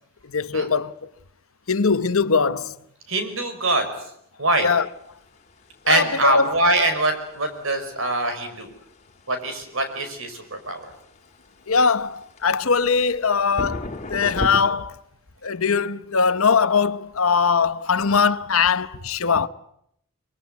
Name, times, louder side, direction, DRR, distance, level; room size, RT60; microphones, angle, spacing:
voice 1, 0.2-0.9 1.7-2.7 4.6-4.9 5.9-6.6 11.7-15.0 15.4-19.5, left 5 dB, 70° left, 1.0 m, -21 dB
voice 2, 3.1-3.9 4.4-4.7 5.9-8.7 9.3-10.8, right 2 dB, 60° right, 5.3 m, -23 dB
sound 1, 4.8-14.6, left 1 dB, 30° left, 2.6 m, -37 dB
24.0 x 22.0 x 9.4 m
head